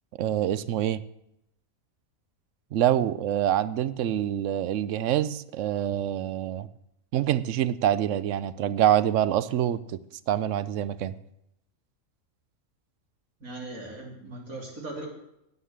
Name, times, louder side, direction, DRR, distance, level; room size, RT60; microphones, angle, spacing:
voice 1, 0.2-1.0 2.7-6.7 7.1-9.8 10.3-11.1, right 11 dB, 65° right, 15 dB, 0.9 m, -25 dB
voice 2, 13.4-15.1, right 2 dB, 80° right, -2 dB, 3.6 m, -39 dB
9.8 x 9.5 x 7.4 m, 0.80 s
omnidirectional pair, 1.5 m